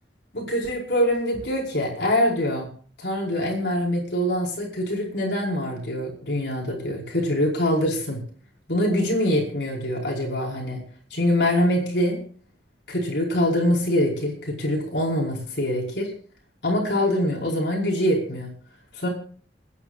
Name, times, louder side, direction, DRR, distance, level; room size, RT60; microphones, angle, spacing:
voice 1, 0.3-2.7 3.0-8.2 8.7-10.8 11.1-12.2 12.9-16.1 16.6-18.5 18.9-19.1, left 1 dB, 65° left, -1 dB, 5.1 m, -24 dB
29.5 x 10.0 x 2.5 m, 0.43 s
head